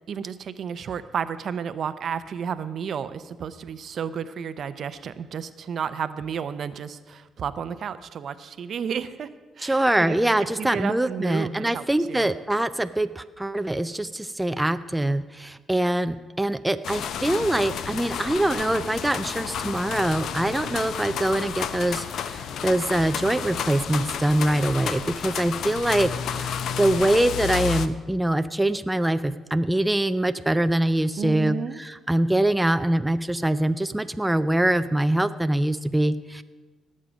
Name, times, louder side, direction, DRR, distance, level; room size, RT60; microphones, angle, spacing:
voice 1, 0.1-9.3 9.6-10.2 10.6-12.3 31.2-31.8, right 7 dB, 60° right, 13 dB, 0.6 m, -32 dB
voice 2, 9.6-36.4, right 1 dB, 10° right, 10 dB, 0.4 m, -24 dB
sound 1, 16.8-27.9, left 8 dB, 70° left, 0.6 m, -31 dB
18.5 x 7.5 x 5.2 m, 1.3 s
cardioid pair, 90°, 0 cm